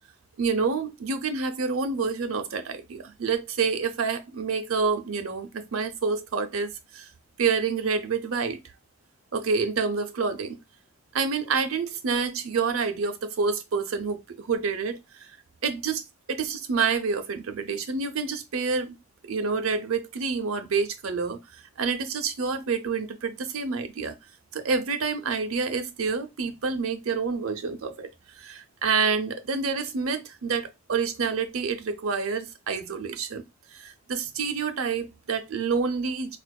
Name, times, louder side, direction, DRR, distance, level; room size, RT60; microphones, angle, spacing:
voice 1, 0.4-7.1 7.4-8.6 9.3-10.6 11.1-15.4 15.6-16.0 16.3-19.0 19.2-24.2 24.5-28.1 28.4-33.4 33.7-36.4, right 5 dB, 85° right, 0.6 m, -28 dB
4.3 x 2.4 x 2.3 m
head